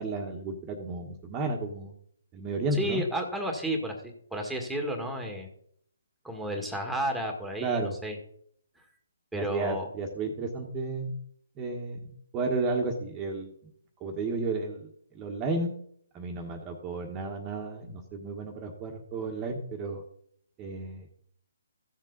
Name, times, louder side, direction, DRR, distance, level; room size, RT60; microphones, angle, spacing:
voice 1, 0.0-1.9 2.3-3.0 7.6-7.9 9.3-11.1 11.6-13.5 14.0-14.9 15.1-15.7 16.1-20.0 20.6-21.0, right 3 dB, 20° right, 1 dB, 1.5 m, -32 dB
voice 2, 2.7-4.0 4.3-5.5 6.2-8.2 9.3-9.9, right 1 dB, ahead, 2 dB, 1.9 m, -32 dB
15.0 x 7.4 x 4.1 m, 0.66 s
hypercardioid pair, 145°, 0 cm